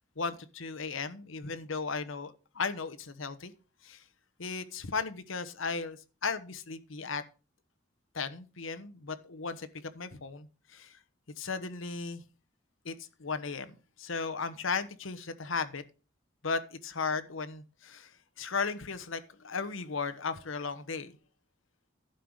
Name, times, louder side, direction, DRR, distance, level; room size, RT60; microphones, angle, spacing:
voice 1, 0.2-3.5 3.8-4.0 4.4-7.2 8.1-11.0 11.4-12.2 12.8-15.8 16.4-21.1, left 4 dB, 75° left, 1.0 m, -36 dB
12.0 x 5.6 x 6.4 m
head